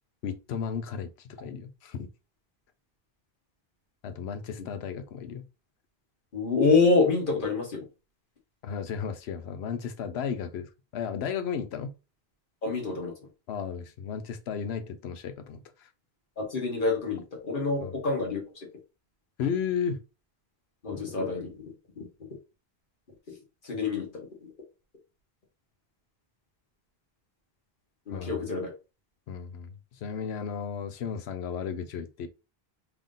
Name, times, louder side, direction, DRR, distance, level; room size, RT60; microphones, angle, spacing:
voice 1, 0.2-2.1 4.0-5.4 8.6-11.9 13.5-15.9 17.8-17.9 19.4-20.0 28.1-28.5 29.3-32.3, left 7 dB, 90° left, 0.9 m, -34 dB
voice 2, 6.3-7.8 12.6-13.1 16.4-18.7 20.8-22.1 23.3-23.4 23.6-24.3 28.1-28.7, left 4 dB, 55° left, 1.5 m, -27 dB
3.5 x 2.5 x 3.8 m
omnidirectional pair, 1.0 m